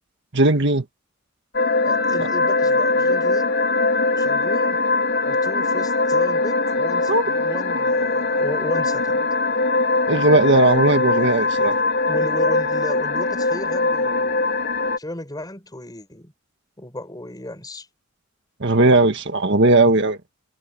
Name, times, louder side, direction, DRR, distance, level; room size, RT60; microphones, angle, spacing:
voice 1, 0.3-0.8 7.1-7.2 10.1-11.8 18.6-20.2, right 2 dB, 60° right, 1.8 m, -17 dB
sound 1, 1.5-15.0, left 3 dB, 55° left, 4.3 m, -21 dB
voice 2, 1.8-3.6 4.2-4.8 5.2-9.3 12.1-14.4 15.0-16.3 16.8-17.9, left 1 dB, 20° left, 5.3 m, -34 dB
head